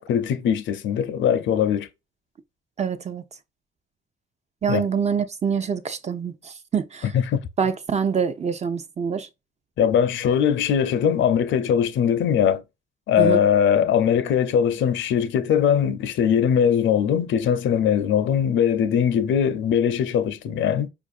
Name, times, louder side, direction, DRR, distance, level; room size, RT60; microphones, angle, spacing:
voice 1, 0.0-1.9 4.7-4.8 7.1-7.5 9.8-12.6 13.1-20.9, left 8 dB, 70° left, 0.5 m, -21 dB
voice 2, 2.8-3.2 4.6-7.1 7.6-9.3 13.2-13.4, right 6 dB, 35° right, 0.5 m, -25 dB
4.9 x 2.5 x 2.4 m
cardioid pair, 90°, 20 cm